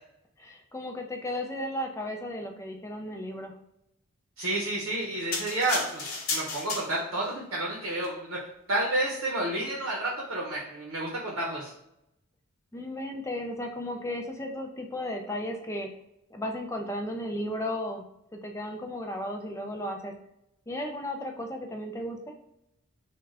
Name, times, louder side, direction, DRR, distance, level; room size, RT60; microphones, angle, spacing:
voice 1, 0.4-3.5 12.7-15.9 16.3-18.0 18.3-20.1 20.7-22.3, left 1 dB, 15° left, 3 dB, 0.4 m, -34 dB
voice 2, 4.4-11.7, right 1 dB, 70° right, -3 dB, 0.8 m, -30 dB
sound 1, 5.3-7.3 7.9-8.1, left 3 dB, 70° left, 0.9 m, -33 dB
3.6 x 2.3 x 3.2 m, 0.81 s
head